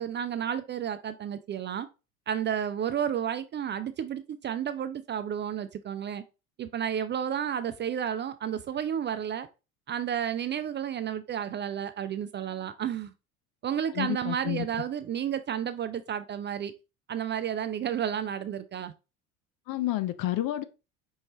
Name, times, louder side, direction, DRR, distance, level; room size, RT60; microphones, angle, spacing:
voice 1, 0.0-1.9 2.3-6.2 6.6-9.5 9.9-13.1 13.6-16.7 17.1-18.9, right 9 dB, 30° right, 0.4 m, -31 dB
voice 2, 13.9-14.7 19.7-20.6, left 14 dB, 55° left, 0.6 m, -30 dB
5.4 x 3.2 x 3.0 m
hypercardioid pair, 75°, 42 cm